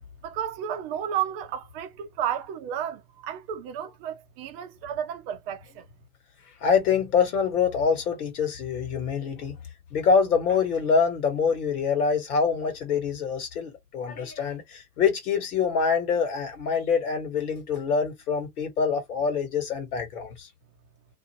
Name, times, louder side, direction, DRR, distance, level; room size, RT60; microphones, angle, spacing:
voice 1, 0.2-5.9, right 9 dB, 40° right, 0.6 m, -32 dB
voice 2, 6.6-9.6 9.9-20.5, left 6 dB, 70° left, 1.6 m, -25 dB
2.6 x 2.4 x 2.9 m
figure-of-eight pair, 95°, 47 cm